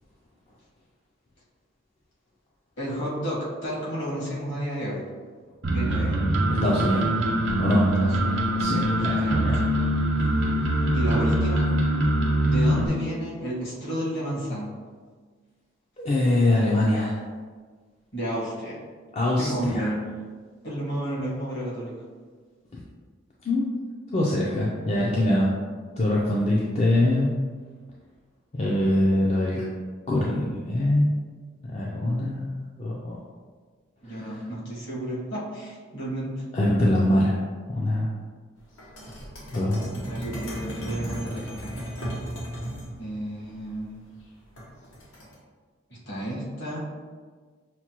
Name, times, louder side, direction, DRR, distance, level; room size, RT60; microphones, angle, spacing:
voice 1, 2.8-5.0 5.6-6.2 8.0-9.5 10.9-11.7 12.4-14.7 18.1-18.8 19.3-20.0 20.6-21.9 34.0-36.4 40.0-42.0 43.0-44.1 45.9-46.9, right 1 dB, 60° left, -7 dB, 1.4 m, -32 dB
sound 1, 5.6-12.9, right 1 dB, 70° right, 0.7 m, -23 dB
voice 2, 6.6-7.0 7.6-7.8 8.6-9.5 16.0-17.1 19.1-19.9 23.5-23.7 24.1-25.5 26.0-27.3 28.6-29.6 30.1-31.2 31.7-32.5 32.8-33.2 36.5-37.4 37.7-38.1 39.5-39.8, left 1 dB, 30° left, -5 dB, 0.4 m, -23 dB
sound 2, 38.8-42.9 44.6-45.3, equal, 85° left, 1.1 m, -35 dB
5.7 x 2.2 x 2.9 m, 1.5 s
head